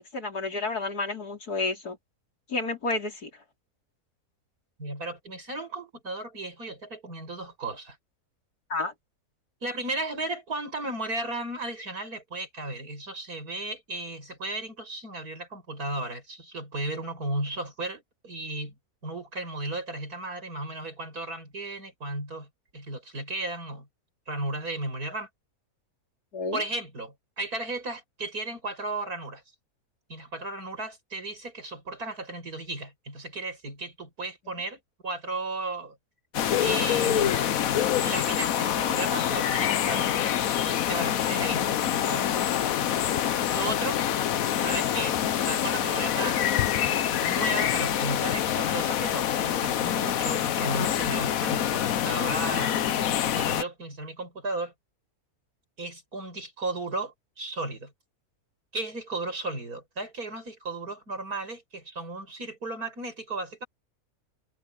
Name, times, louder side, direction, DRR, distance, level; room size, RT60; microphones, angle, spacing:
voice 1, 0.0-2.0 2.5-3.3 8.7-8.9 26.3-26.6, left 3 dB, 90° left, 4.5 m, -30 dB
voice 2, 4.8-8.0 9.6-18.7 19.0-23.9 24.3-25.3 26.5-29.4 30.1-36.0 36.6-37.6 38.0-40.2 40.6-42.3 43.5-44.0 44.5-45.2 45.5-52.9 53.4-54.7 55.8-57.9 58.7-63.7, right 2 dB, 75° right, 7.7 m, -35 dB
sound 1, 36.3-53.6, left 10 dB, 70° left, 1.2 m, -26 dB
omnidirectional pair, 1.6 m